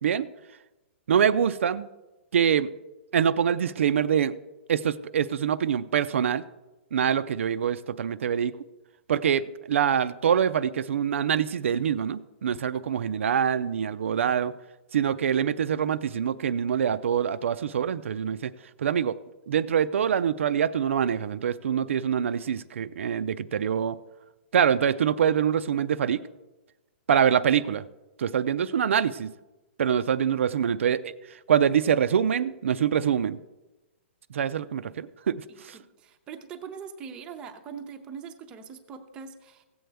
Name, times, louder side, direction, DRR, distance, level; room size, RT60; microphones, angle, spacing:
voice 1, 1.1-1.9 2.3-2.7 3.1-4.3 4.7-6.4 6.9-8.5 9.1-14.5 14.9-18.5 18.8-19.1 19.5-24.0 24.5-26.2 27.1-27.8 28.2-29.3 29.8-31.1 31.5-33.4 34.3-35.8, right 8 dB, 85° right, 12 dB, 0.4 m, -25 dB
voice 2, 35.5-39.6, right 6 dB, 15° right, 5 dB, 0.6 m, -42 dB
16.0 x 7.8 x 3.4 m, 1.1 s
hypercardioid pair, 170°, 7 cm